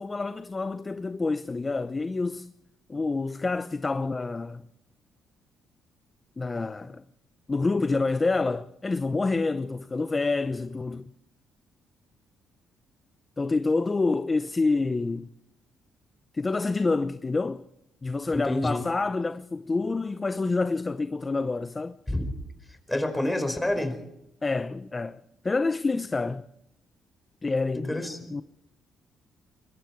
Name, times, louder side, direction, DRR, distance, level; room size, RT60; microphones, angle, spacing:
voice 1, 0.0-2.5 2.9-4.6 6.4-7.0 7.5-11.1 13.4-15.3 16.3-17.6 18.0-22.0 24.4-26.4 27.4-27.9 28.3-28.4, left 3 dB, 25° left, 0.7 m, -27 dB
voice 2, 18.3-18.8 22.1-22.3 22.7-24.0 27.7-28.4, left 1 dB, 10° left, 4.8 m, -28 dB
25.0 x 22.0 x 4.6 m
cardioid pair, 90°, 0 cm